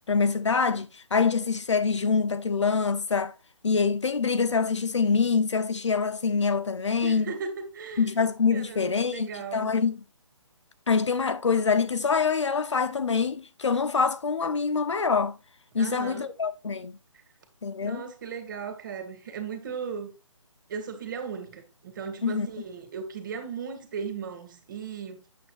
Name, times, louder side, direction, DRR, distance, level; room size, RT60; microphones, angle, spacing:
voice 1, 0.1-3.3 3.6-7.3 8.0-10.0 10.9-15.4 15.7-16.9 17.6-18.0 22.2-22.5, left 5 dB, 60° left, 1.0 m, -25 dB
voice 2, 7.0-8.1 8.5-9.7 15.7-16.3 17.8-20.1 20.7-25.2, right 6 dB, 40° right, 2.3 m, -37 dB
8.5 x 7.9 x 2.4 m
figure-of-eight pair, 145°, 17 cm